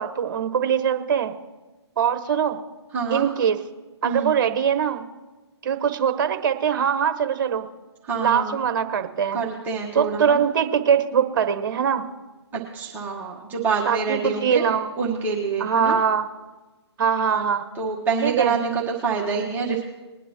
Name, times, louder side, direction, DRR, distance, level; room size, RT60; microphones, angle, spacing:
voice 1, 0.0-1.3 2.0-2.6 3.1-3.6 4.0-5.0 5.6-7.7 8.2-9.4 9.9-12.0 13.8-14.9 15.6-16.3 17.0-17.6 18.2-18.5, right 7 dB, 45° right, 8 dB, 1.1 m, -22 dB
voice 2, 2.9-3.3 4.0-4.3 8.0-8.6 9.3-10.4 12.5-14.6 15.0-16.0 17.3-17.4 17.7-19.8, right 5 dB, 10° right, -5 dB, 1.3 m, -26 dB
21.0 x 9.8 x 3.0 m, 1.2 s
figure-of-eight pair, 140°, 15 cm